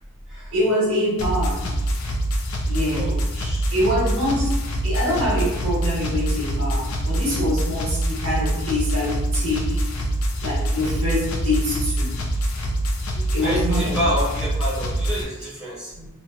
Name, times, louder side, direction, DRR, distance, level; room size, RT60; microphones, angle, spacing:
voice 1, 0.5-1.6 2.6-3.1 3.7-9.8 10.4-12.1 13.3-13.9 15.9-16.1, left 1 dB, 75° right, -6 dB, 1.2 m, -24 dB
sound 1, 1.2-15.2, right 1 dB, 85° left, 0.4 m, -25 dB
voice 2, 2.9-3.7 13.1-15.9, equal, 5° right, -10 dB, 0.7 m, -29 dB
2.7 x 2.1 x 2.3 m, 1.0 s
head